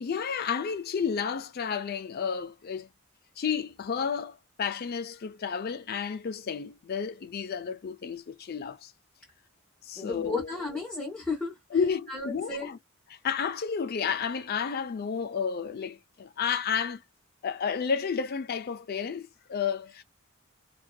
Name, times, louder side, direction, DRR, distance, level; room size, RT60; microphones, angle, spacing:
voice 1, 0.0-2.9 3.4-8.9 9.8-10.5 11.7-12.8 13.2-17.0 17.4-20.0, left 6 dB, 45° left, 0.4 m, -31 dB
voice 2, 10.0-11.6 12.1-12.7, left 3 dB, 5° left, 0.9 m, -33 dB
2.6 x 2.3 x 2.2 m
head